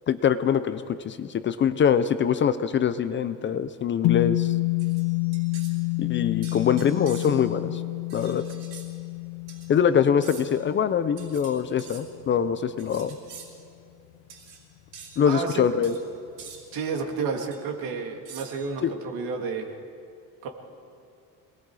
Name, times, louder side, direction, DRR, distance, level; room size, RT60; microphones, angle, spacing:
voice 1, 0.1-4.5 6.0-7.8 8.1-8.5 9.7-13.2 15.2-15.9 18.8-18.9, left 8 dB, 30° left, 12 dB, 0.6 m, -24 dB
sound 1, 4.0-12.5, left 25 dB, 90° left, 0.8 m, -28 dB
sound 2, 4.8-5.8 6.4-7.5 8.1-8.9 9.5-9.7 10.2-10.6 11.2-12.0 12.8-13.5 14.3-14.6 14.9-15.2 15.8-16.0 16.4-16.6 17.5-17.6 18.3-18.7, right 7 dB, 90° right, 4.9 m, -46 dB
voice 2, 15.2-15.7 16.7-19.7 20.4-20.5, right 5 dB, 65° right, 3 dB, 2.7 m, -31 dB
27.5 x 20.0 x 4.9 m, 2.4 s
cardioid pair, 160°, 37 cm